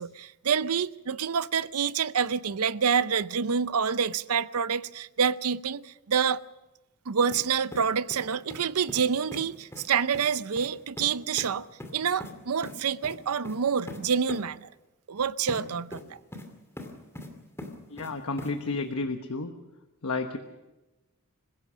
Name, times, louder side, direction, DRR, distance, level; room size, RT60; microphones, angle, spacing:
voice 1, 0.0-6.4 7.1-11.7 11.9-14.7 15.1-16.2, right 6 dB, 70° right, 0.6 m, -27 dB
sound 1, 7.3-7.5 7.7-8.6 8.9-9.0 9.3-9.4 9.7-9.9 10.1-10.3 10.6-10.7 11.0-11.1 11.4-11.5 11.8-12.3 12.6-12.8 13.0-13.2 13.4-13.6 13.9-14.0 14.3-14.4 15.5-15.6 15.9-16.5 16.8-17.3 17.6-18.1 18.4-18.5, left 1 dB, 10° left, 2.5 m, -40 dB
voice 2, 17.9-19.5 20.0-20.4, left 3 dB, 70° left, 1.2 m, -31 dB
26.0 x 16.0 x 6.4 m
head